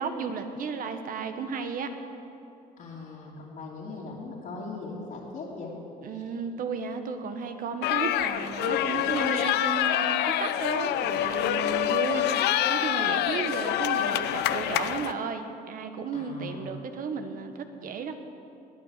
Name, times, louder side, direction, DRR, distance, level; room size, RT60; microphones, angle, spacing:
voice 1, 0.0-1.9 6.0-12.3 12.7-18.1, right 5 dB, 55° right, 7 dB, 1.3 m, -34 dB
voice 2, 2.8-5.7 6.1-6.2 16.1-16.7, left 3 dB, 55° left, -7 dB, 3.0 m, -39 dB
sound 1, 7.8-15.1, left 12 dB, 80° left, 0.6 m, -26 dB
20.5 x 9.0 x 6.7 m, 2.8 s
cardioid pair, 110°, 17 cm